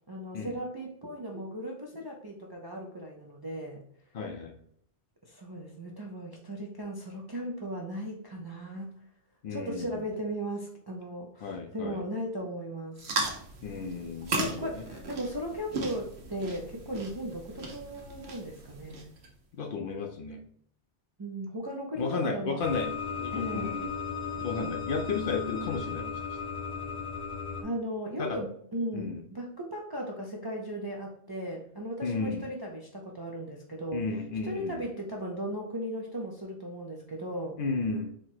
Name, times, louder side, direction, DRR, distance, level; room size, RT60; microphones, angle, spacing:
voice 1, 0.1-3.8 5.2-8.9 9.5-13.1 14.3-19.1 21.2-22.7 23.3-23.8 27.6-34.1 34.4-37.6, equal, 40° right, -1 dB, 0.3 m, -37 dB
voice 2, 4.1-4.6 9.4-10.1 11.4-12.0 13.6-14.8 19.5-20.4 22.0-23.9 24.4-26.1 28.2-28.4 28.9-29.2 32.0-32.5 33.9-34.8 37.6-38.1, left 4 dB, 60° left, 5 dB, 0.6 m, -33 dB
sound 1, 13.0-19.3, right 3 dB, 70° right, 1.1 m, -37 dB
sound 2, 22.6-27.6, left 5 dB, 5° right, 0.7 m, -36 dB
4.3 x 2.1 x 4.3 m, 0.64 s
omnidirectional pair, 1.2 m